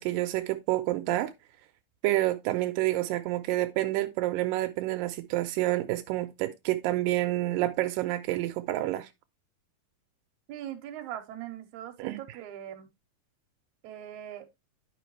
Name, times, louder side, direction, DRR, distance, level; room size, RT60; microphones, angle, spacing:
voice 1, 0.0-1.3 2.0-9.1 12.0-12.4, right 16 dB, 85° right, 2.3 m, -28 dB
voice 2, 10.5-12.9 13.8-14.5, right 11 dB, 70° right, 2.3 m, -41 dB
11.0 x 5.1 x 3.1 m
omnidirectional pair, 3.9 m